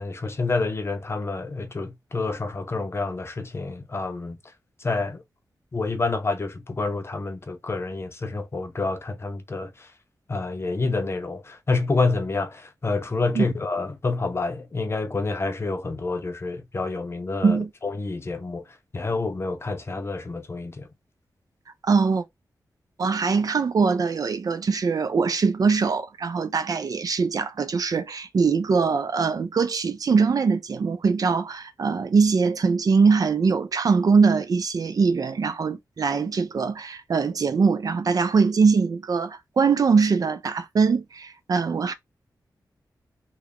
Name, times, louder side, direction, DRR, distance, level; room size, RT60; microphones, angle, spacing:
voice 1, 0.0-4.4 4.8-5.2 5.7-9.9 10.3-20.9, left 3 dB, 35° left, 0.7 m, -28 dB
voice 2, 21.8-22.2 23.0-41.9, right 5 dB, 55° right, 0.6 m, -22 dB
3.2 x 2.2 x 3.7 m
wide cardioid pair, 100°, 7 cm